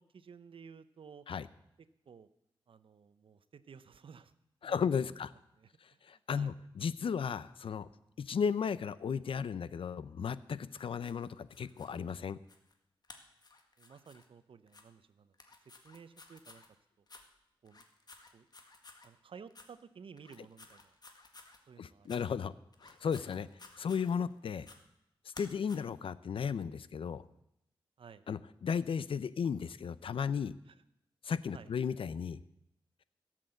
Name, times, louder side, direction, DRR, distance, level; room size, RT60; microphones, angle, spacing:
voice 1, 0.0-1.3 2.1-2.3 2.7-4.3 4.6-4.9 5.6-6.0 6.3-6.5 13.8-15.3 15.8-16.6 17.0-17.1 17.6-17.8 18.3-18.5 19.0-20.9 21.7-22.1 28.0-28.3 30.7-30.8 31.5-31.7, right 6 dB, 75° right, 13 dB, 0.8 m, -54 dB
voice 2, 4.6-5.3 5.8-7.9 8.2-12.4 21.8-22.5 22.8-24.7 25.2-27.2 28.3-30.5 31.2-32.4, left 6 dB, 80° left, 16 dB, 0.6 m, -35 dB
sound 1, 10.7-12.0 12.5-12.7 13.0-14.2 14.7-14.8 15.3-16.7 17.1-17.2 17.6-19.1 19.5-19.7 20.2-21.6 22.0-22.2 22.7-24.3 24.6-24.8 25.3-25.8, left 3 dB, 50° left, 1.8 m, -56 dB
17.0 x 7.6 x 7.8 m, 0.81 s
wide cardioid pair, 90°, 9 cm